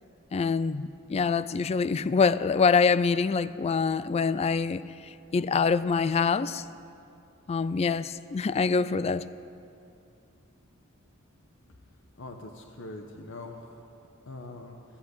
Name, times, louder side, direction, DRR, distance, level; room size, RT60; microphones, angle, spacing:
voice 1, 0.3-4.8 5.3-6.6 7.5-9.3, left 5 dB, 30° left, 16 dB, 0.3 m, -25 dB
voice 2, 12.2-13.8 14.3-14.7, left 2 dB, 65° left, 4 dB, 1.0 m, -42 dB
15.0 x 8.5 x 8.1 m, 2.6 s
head